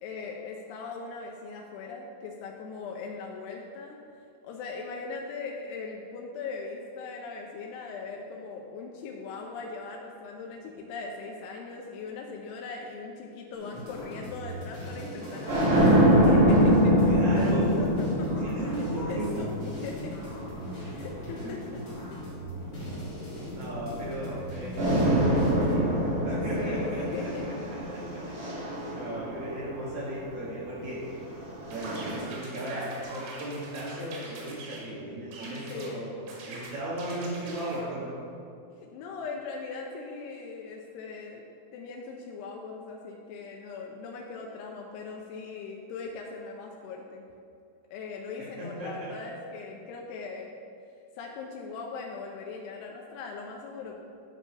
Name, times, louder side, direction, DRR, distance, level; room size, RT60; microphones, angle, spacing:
voice 1, 0.0-4.0 4.4-17.1 17.8-20.2 20.9-21.6 26.6-27.5 35.5-36.1 38.7-41.4 41.7-47.2 47.9-50.5 51.2-54.0, left 4 dB, 90° left, 0 dB, 2.7 m, -39 dB
sound 1, 13.5-25.8, left 1 dB, 60° left, 0.8 m, -40 dB
sound 2, 15.2-21.8 22.5-24.4 24.7-30.1 31.1-32.2, equal, 45° right, 1.8 m, -25 dB
voice 2, 17.1-17.8 18.4-19.5 19.8-19.9 21.4-21.6 23.5-27.1 27.7-28.0 28.9-31.0 31.7-38.2 48.6-49.2, right 1 dB, 65° right, -7 dB, 2.1 m, -36 dB
incoming Ricochets, 31.7-34.9 35.3-35.9 36.3-37.8, right 2 dB, 85° right, 3.3 m, -44 dB
10.5 x 5.3 x 3.3 m, 2.5 s
omnidirectional pair, 4.6 m